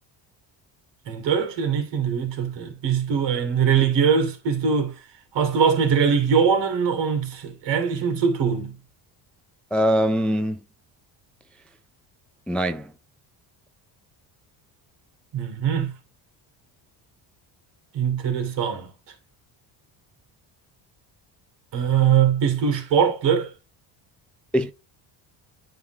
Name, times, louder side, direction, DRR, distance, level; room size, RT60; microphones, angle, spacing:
voice 1, 1.1-4.9 5.3-8.8 15.3-15.9 17.9-18.9 21.7-23.5, right 7 dB, 70° right, 2.8 m, -22 dB
voice 2, 9.7-10.6 12.5-12.9 24.5-24.7, equal, 5° left, 0.3 m, -22 dB
10.5 x 3.7 x 2.8 m
cardioid pair, 135°, 45 cm